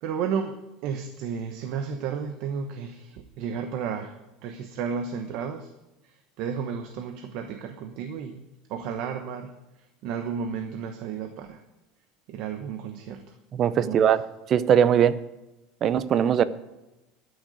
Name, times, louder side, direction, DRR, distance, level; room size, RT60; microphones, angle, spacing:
voice 1, 0.0-4.1 4.4-5.7 6.0-8.4 8.7-9.5 10.0-11.6 12.3-13.4 13.8-14.1, right 6 dB, 55° right, 7 dB, 1.1 m, -33 dB
voice 2, 13.6-14.2 14.5-15.2 15.8-16.4, right 9 dB, 35° right, 15 dB, 0.6 m, -20 dB
12.5 x 6.6 x 9.3 m, 1.0 s
supercardioid pair, 145°, 0 cm